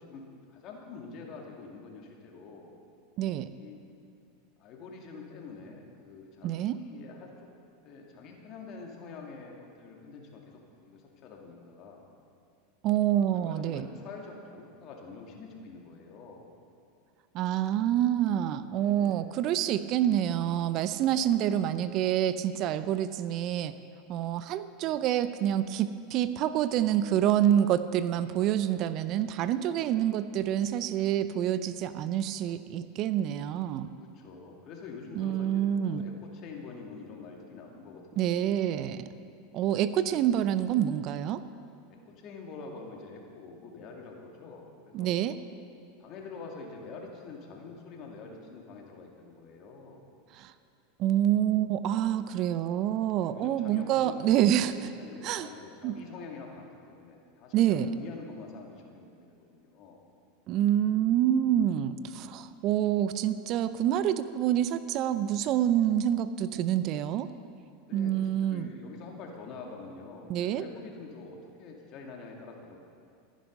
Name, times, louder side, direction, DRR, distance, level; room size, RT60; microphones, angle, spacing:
voice 1, 0.0-2.7 3.5-3.8 4.6-7.5 7.8-12.0 13.1-16.5 18.7-19.3 34.0-38.5 41.9-45.1 46.0-50.0 52.2-52.3 53.2-54.3 54.7-60.0 67.9-72.8, left 4 dB, 45° left, 0 dB, 2.4 m, -46 dB
voice 2, 3.2-3.5 6.4-6.8 12.8-13.9 17.3-23.7 24.1-33.9 35.2-36.0 38.2-39.1 39.5-41.4 44.9-45.3 50.4-50.5 51.0-54.9 55.2-55.5 55.8-56.0 57.5-57.9 60.5-67.3 67.9-68.7 70.3-70.6, right 11 dB, 50° right, 13 dB, 0.6 m, -27 dB
14.5 x 10.0 x 5.4 m, 2.4 s
hypercardioid pair, 95°, 0 cm